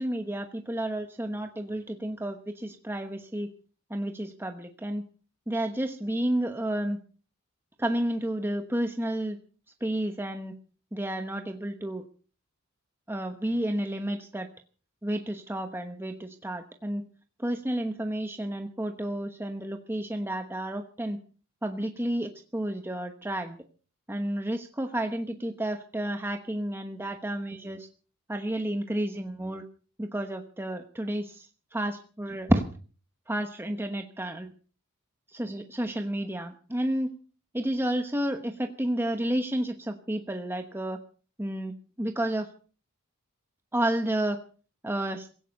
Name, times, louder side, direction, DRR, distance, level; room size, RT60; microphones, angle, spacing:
voice 1, 0.0-3.5 3.9-5.1 5.5-7.0 7.8-9.4 9.8-10.5 10.9-12.0 13.1-14.5 15.0-17.0 17.4-21.2 21.6-23.6 24.1-27.9 28.3-29.6 30.0-32.6 33.3-34.5 35.3-37.1 37.5-41.0 41.4-42.5 43.7-44.4 44.8-45.2, right 1 dB, 10° right, 5 dB, 1.1 m, -31 dB
16.5 x 16.0 x 5.3 m, 0.41 s
head